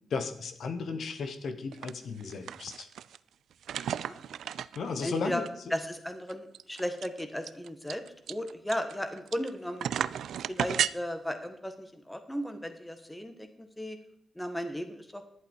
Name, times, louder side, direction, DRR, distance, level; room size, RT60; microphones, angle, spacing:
voice 1, 0.1-2.9 4.7-5.5, left 4 dB, 65° left, 9 dB, 1.3 m, -35 dB
sound 1, 1.7-1.9 2.2-3.2 3.6-5.1 5.5-5.6 5.8-5.9 6.3-9.5 9.8-10.9, right 9 dB, 90° right, 0.4 m, -33 dB
voice 2, 5.0-5.4 5.7-9.9 10.5-14.0 14.3-15.2, equal, 5° left, 7 dB, 1.5 m, -35 dB
11.5 x 11.0 x 4.5 m, 0.71 s
wide cardioid pair, 125°, 0 cm